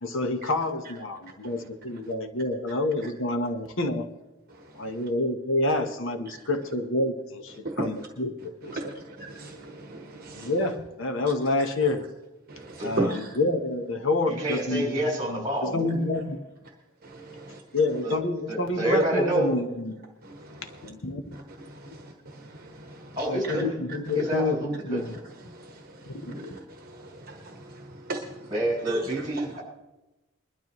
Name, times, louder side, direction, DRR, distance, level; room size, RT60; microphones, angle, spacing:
voice 1, 0.0-4.1 4.8-9.0 10.4-12.0 12.8-16.4 17.7-20.0 20.8-21.2 21.9-22.0 23.3-25.2 26.1-26.5, left 2 dB, 70° left, 7 dB, 1.0 m, -28 dB
voice 2, 8.7-10.5 12.5-13.3 17.5-17.6 26.5-26.6 28.1-28.2 28.9-29.0 29.4-29.5, right 2 dB, 45° right, 3 dB, 1.2 m, -32 dB
voice 3, 14.4-15.8 18.0-18.2 18.5-19.5 23.2-23.6 24.2-25.0 28.5-29.6, right 1 dB, 20° right, -2 dB, 5.7 m, -27 dB
21.5 x 12.0 x 3.1 m, 0.99 s
head